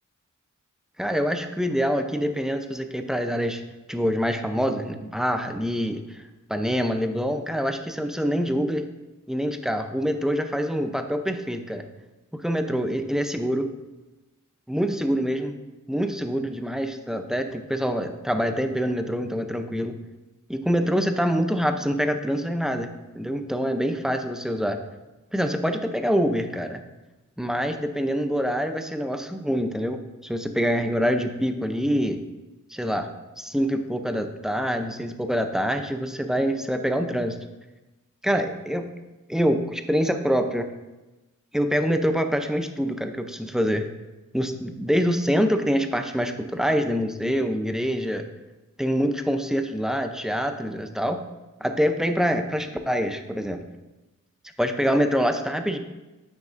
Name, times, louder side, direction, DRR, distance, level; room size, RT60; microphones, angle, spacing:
voice 1, 1.0-3.6 3.9-6.2 6.5-8.9 9.3-11.8 12.3-13.7 14.7-15.6 15.9-20.0 20.5-24.8 25.3-26.8 27.4-32.2 32.7-33.1 33.4-37.4 38.2-38.9 39.3-40.7 41.5-43.9 44.3-48.3 48.8-51.2 51.6-53.6 54.6-55.8, equal, ahead, 6 dB, 0.5 m, -25 dB
9.5 x 6.4 x 2.5 m, 1.1 s
wide cardioid pair, 95°, 32 cm